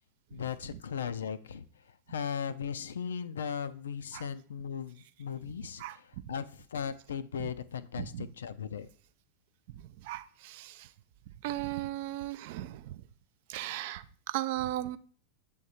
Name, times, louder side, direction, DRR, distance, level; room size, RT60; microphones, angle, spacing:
voice 1, 0.3-8.9, left 7 dB, 65° left, 0.3 m, -37 dB
voice 2, 8.0-8.3 9.7-10.9 11.4-13.0 13.5-15.0, right 14 dB, 50° right, 0.3 m, -37 dB
7.6 x 3.6 x 4.1 m
figure-of-eight pair, 90°, 0 cm